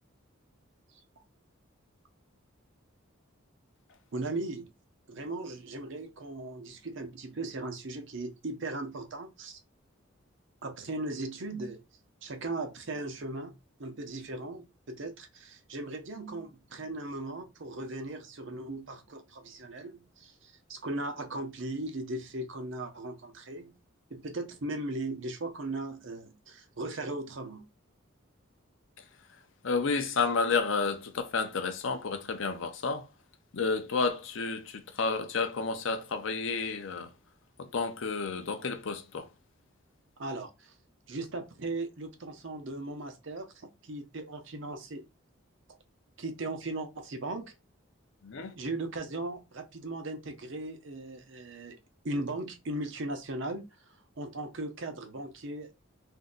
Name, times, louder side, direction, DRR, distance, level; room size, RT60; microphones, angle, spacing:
voice 1, 4.1-4.7 5.1-9.6 10.6-11.8 12.2-13.5 13.8-23.7 24.1-27.6 40.2-40.7 41.1-43.5 43.8-45.0 46.2-47.5 48.6-51.8 52.0-53.6 54.2-55.8, right 2 dB, 65° right, 0.7 m, -38 dB
voice 2, 29.6-33.0 33.5-34.6 35.0-37.1 37.7-39.3 48.2-48.5, left 4 dB, 65° left, 0.6 m, -30 dB
2.7 x 2.2 x 3.8 m
head